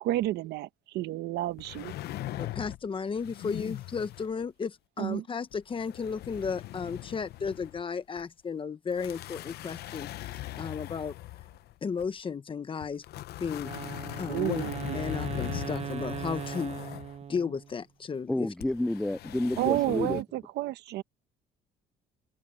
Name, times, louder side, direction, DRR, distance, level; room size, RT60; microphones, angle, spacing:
voice 1, 0.0-1.9 5.0-5.2 14.3-15.0 19.6-21.0, right 16 dB, 80° right, 1.1 m, -31 dB
sound 1, 1.6-2.9 3.1-4.4 5.5-7.8 8.2-8.3 8.9-12.1 12.8-17.2 18.6-20.2, left 15 dB, 70° left, 0.9 m, -40 dB
voice 2, 2.4-11.1 11.8-13.0 13.4-13.7 14.2-14.6 14.9-16.8 17.3-18.5, left 6 dB, 30° left, 1.3 m, -34 dB
Wind instrument woodwind instrument, 13.6-17.8, right 8 dB, 40° right, 0.8 m, -39 dB
voice 3, 18.3-20.2, left 1 dB, 5° left, 0.3 m, -30 dB
cardioid pair, 110°, 17 cm